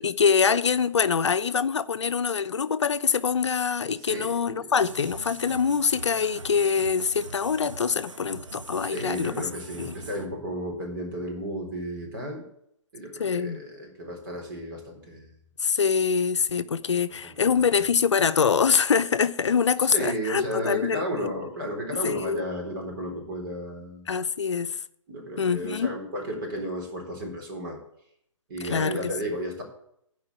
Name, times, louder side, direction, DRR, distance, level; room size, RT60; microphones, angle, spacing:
voice 1, 0.0-9.3 9.8-9.9 13.2-13.6 15.6-21.3 22.0-22.4 24.1-24.8 25.4-25.9 28.6-29.1, left 6 dB, 60° left, 0.8 m, -24 dB
voice 2, 4.0-4.8 8.8-12.5 12.9-15.4 17.2-17.9 19.8-24.0 25.1-27.8 28.5-29.6, equal, 40° right, 4.2 m, -33 dB
sound 1, 4.8-10.3, right 3 dB, 70° right, 1.5 m, -42 dB
14.5 x 5.2 x 8.8 m
figure-of-eight pair, 130°, 17 cm